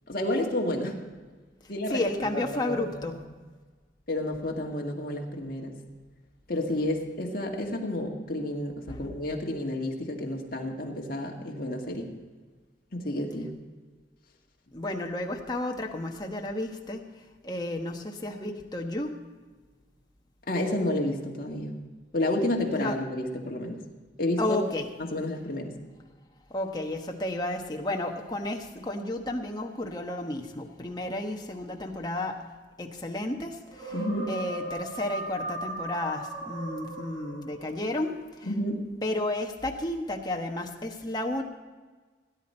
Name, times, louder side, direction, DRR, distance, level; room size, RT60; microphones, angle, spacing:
voice 1, 0.1-1.0 1.7-3.2 4.1-5.8 6.5-12.1 12.9-13.5 20.5-21.8 22.1-23.8 24.2-24.6 25.0-25.8 33.9-34.3 38.4-38.8, left 1 dB, 50° left, 0 dB, 1.9 m, -30 dB
voice 2, 1.9-3.1 8.9-9.0 14.7-17.0 17.4-19.1 22.7-22.9 24.4-24.8 26.5-32.4 32.8-33.9 34.3-38.5 39.0-41.4, left 1 dB, 20° left, 2 dB, 1.2 m, -32 dB
sound 1, 33.7-37.8, right 2 dB, 75° right, 5.0 m, -38 dB
17.5 x 10.5 x 4.4 m, 1.4 s
head